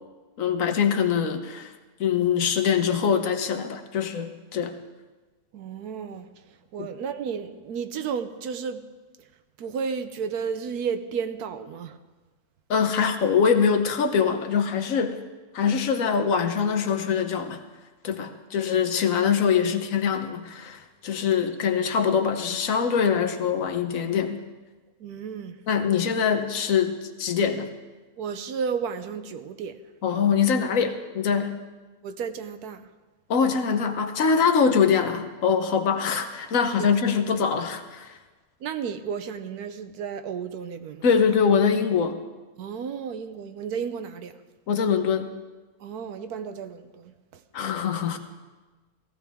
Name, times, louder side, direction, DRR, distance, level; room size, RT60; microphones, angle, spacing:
voice 1, 0.4-1.7 2.0-4.7 6.8-6.9 12.7-15.2 15.5-17.6 18.0-24.4 25.7-27.7 30.0-31.6 33.3-38.1 41.0-42.2 44.7-45.3 47.5-48.2, left 6 dB, 60° left, 7 dB, 1.3 m, -23 dB
voice 2, 5.5-6.3 6.7-8.8 9.6-12.0 18.3-18.4 21.2-21.3 25.0-25.6 28.2-29.7 32.0-32.9 36.8-36.9 38.6-41.1 42.6-44.3 45.8-47.1, right 6 dB, 80° right, 9 dB, 1.3 m, -32 dB
17.5 x 15.0 x 3.5 m, 1.3 s
omnidirectional pair, 1.6 m